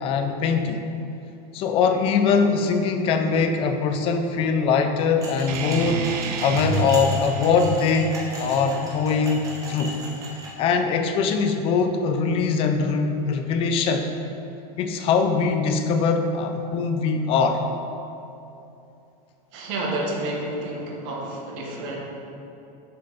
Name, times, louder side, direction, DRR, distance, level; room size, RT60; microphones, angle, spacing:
voice 1, 0.0-0.8 1.5-6.1 6.4-9.9 10.6-14.1 14.8-17.6, left 5 dB, 30° left, 6 dB, 0.4 m, -22 dB
sound 1, 5.2-10.5, right 1 dB, 15° right, 1.1 m, -38 dB
sound 2, 5.5-10.5, right 4 dB, 80° right, 0.7 m, -31 dB
voice 2, 19.5-22.0, right 2 dB, 55° right, -1 dB, 1.4 m, -30 dB
6.8 x 5.4 x 4.0 m, 2.8 s
supercardioid pair, 165°, 20 cm